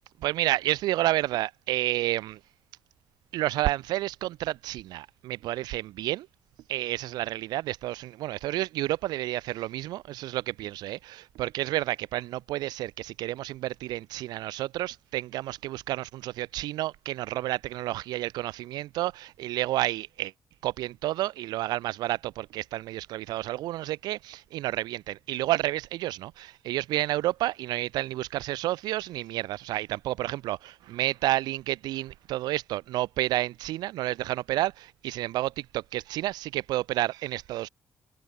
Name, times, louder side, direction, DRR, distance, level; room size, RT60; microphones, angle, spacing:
voice 1, 0.2-2.4 3.3-6.3 6.7-20.3 20.6-37.7, right 16 dB, 65° right, 6.1 m, -30 dB
figure-of-eight pair, 45°, 7 cm